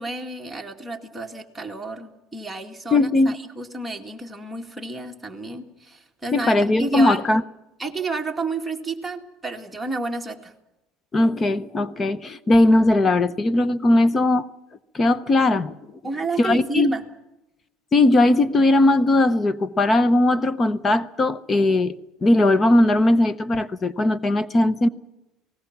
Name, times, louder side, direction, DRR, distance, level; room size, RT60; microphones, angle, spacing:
voice 1, 0.0-7.2 7.8-10.5 16.0-17.1, right 3 dB, 5° right, 2.1 m, -31 dB
voice 2, 2.9-3.3 6.3-7.4 11.1-14.5 14.9-15.7 16.4-16.9 17.9-21.9 22.2-24.9, left 2 dB, 20° left, 0.8 m, -19 dB
29.5 x 19.5 x 6.0 m
cardioid pair, 135°, 0 cm